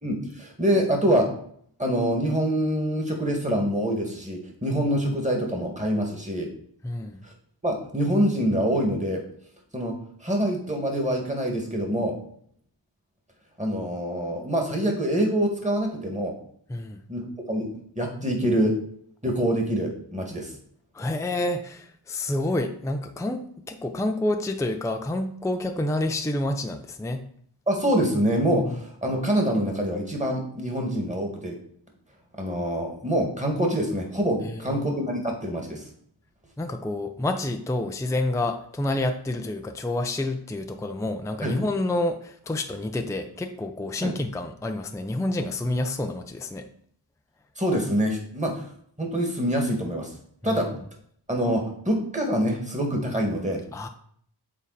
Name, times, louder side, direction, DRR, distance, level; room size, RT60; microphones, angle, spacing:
voice 1, 0.0-1.3 1.8-6.5 7.2-7.3 7.6-9.2 9.7-12.1 13.6-16.3 17.1-17.7 18.0-18.8 19.2-20.5 27.7-31.5 32.4-35.8 41.4-41.6 44.0-44.1 47.6-48.7 49.0-50.1 50.4-50.7 51.3-53.6, equal, 15° right, 1 dB, 2.0 m, -25 dB
voice 2, 6.8-7.2 16.7-17.0 20.9-27.2 28.6-28.7 34.4-34.9 36.6-46.7 50.4-50.7 53.7-53.9, left 1 dB, 5° left, 6 dB, 0.5 m, -28 dB
7.2 x 4.0 x 4.2 m, 0.63 s
cardioid pair, 40°, 44 cm